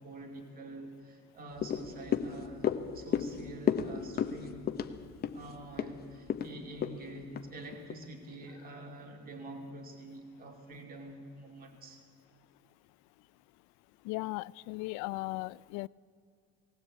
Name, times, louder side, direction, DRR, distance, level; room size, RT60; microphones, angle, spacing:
voice 1, 0.0-4.7 5.3-12.0, right 2 dB, 30° right, 2.6 m, -47 dB
sound 1, 1.6-8.1 8.4-8.5, left 8 dB, 30° left, 0.9 m, -34 dB
voice 2, 14.1-15.9, left 22 dB, 70° left, 0.5 m, -37 dB
18.5 x 18.0 x 8.3 m
cardioid pair, 145°, 30 cm